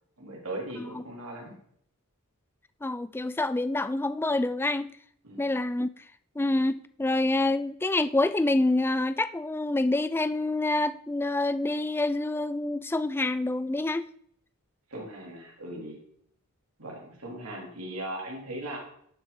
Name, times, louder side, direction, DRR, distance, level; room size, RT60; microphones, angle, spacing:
voice 1, 0.2-1.6 5.2-5.4 14.9-16.0 16.8-18.8, right 1 dB, 80° right, 3.7 m, -38 dB
voice 2, 2.8-5.0 5.4-5.9 6.4-14.1, left 2 dB, 10° left, 0.3 m, -27 dB
13.0 x 7.0 x 4.2 m
head